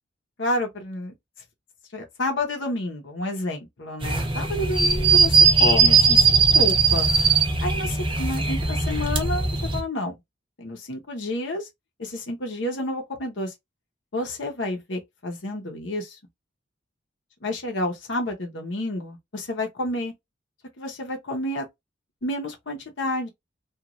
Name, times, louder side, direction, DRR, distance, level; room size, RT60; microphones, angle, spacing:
voice 1, 0.4-1.1 1.9-7.1 7.6-10.1 10.6-11.7 12.0-13.5 14.1-16.2 17.4-20.1 20.8-21.7 22.2-23.3, left 1 dB, 75° left, 0.8 m, -30 dB
sound 1, 4.0-9.8, right 5 dB, 25° right, 0.7 m, -19 dB
3.0 x 2.4 x 2.4 m
head